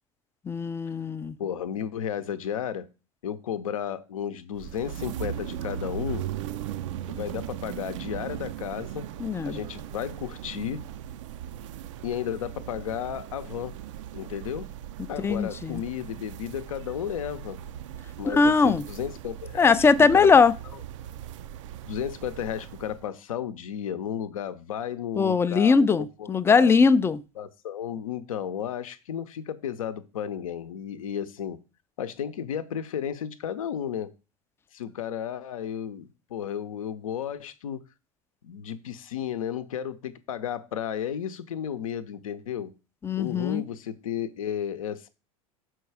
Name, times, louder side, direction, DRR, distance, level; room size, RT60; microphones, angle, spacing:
voice 1, 0.5-1.3 9.2-9.6 15.2-15.8 18.3-18.8 19.6-20.5 25.2-27.2 43.0-43.6, left 5 dB, 15° left, 0.4 m, -20 dB
voice 2, 1.4-2.9 3.2-6.3 7.1-9.0 9.4-10.8 12.0-13.8 14.1-14.7 15.1-17.6 18.2-19.8 20.1-20.3 21.8-25.9 26.2-26.7 27.4-31.6 32.0-34.1 34.7-37.8 38.4-42.7 43.2-45.1, left 9 dB, 70° left, 0.7 m, -33 dB
sound 1, 4.5-23.1, right 10 dB, 60° right, 0.4 m, -38 dB
6.3 x 4.7 x 4.7 m
figure-of-eight pair, 80°, 18 cm